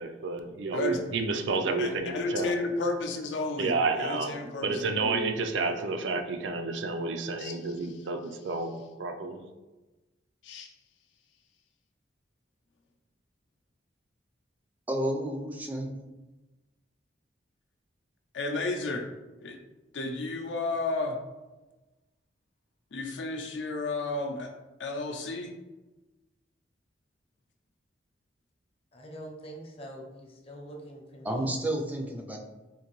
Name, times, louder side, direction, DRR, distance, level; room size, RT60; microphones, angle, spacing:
voice 1, 0.0-2.5 3.6-4.4 4.6-8.7 9.0-9.4, right 3 dB, 75° right, 5 dB, 0.4 m, -30 dB
voice 2, 1.8-5.3 7.4-7.7 10.4-10.7 18.3-19.0 19.4-19.6 19.9-21.2 22.9-24.5 24.8-25.5, left 3 dB, 75° left, 3 dB, 0.5 m, -32 dB
voice 3, 14.9-16.0 31.2-32.4, right 1 dB, 10° right, 1 dB, 0.3 m, -31 dB
voice 4, 28.9-31.6, right 1 dB, 30° left, 0 dB, 0.6 m, -44 dB
3.7 x 2.6 x 3.0 m, 1.1 s
head